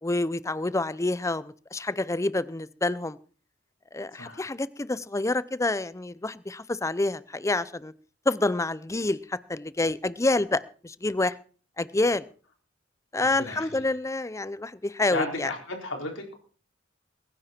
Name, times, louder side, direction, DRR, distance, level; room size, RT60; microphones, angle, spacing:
voice 1, 0.0-3.2 3.9-7.9 8.3-11.3 11.8-12.3 13.1-15.5, left 2 dB, 15° left, 17 dB, 0.6 m, -28 dB
voice 2, 13.4-13.8 15.1-16.4, left 2 dB, 80° left, 2 dB, 4.2 m, -34 dB
22.0 x 10.0 x 4.4 m, 0.40 s
head